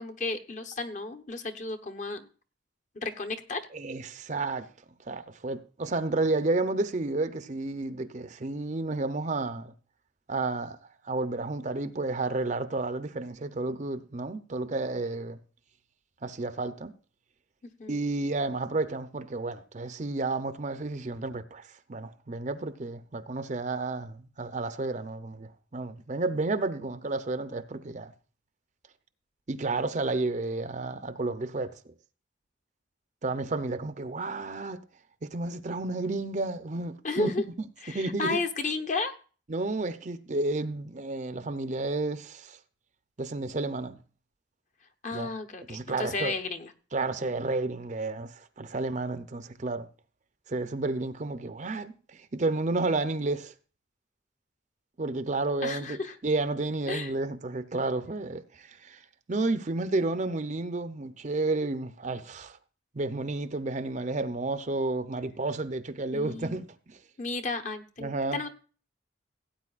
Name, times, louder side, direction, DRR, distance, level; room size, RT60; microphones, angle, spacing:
voice 1, 0.0-2.3 3.0-3.6 17.8-18.0 37.0-37.4 37.8-39.1 45.0-46.7 55.6-56.2 56.9-57.1 66.1-66.6 67.2-68.5, left 3 dB, 40° left, 0.9 m, -33 dB
voice 2, 3.7-4.7 5.1-9.7 10.3-10.8 11.0-15.4 16.2-16.9 17.9-28.1 29.5-31.7 33.2-34.8 35.2-37.3 37.9-38.4 39.5-42.6 43.2-44.0 45.1-45.3 45.7-46.3 46.9-49.9 50.5-53.5 55.0-59.0 59.3-62.6 62.9-67.0 68.0-68.4, right 2 dB, 40° right, 0.6 m, -31 dB
17.0 x 9.0 x 2.4 m
head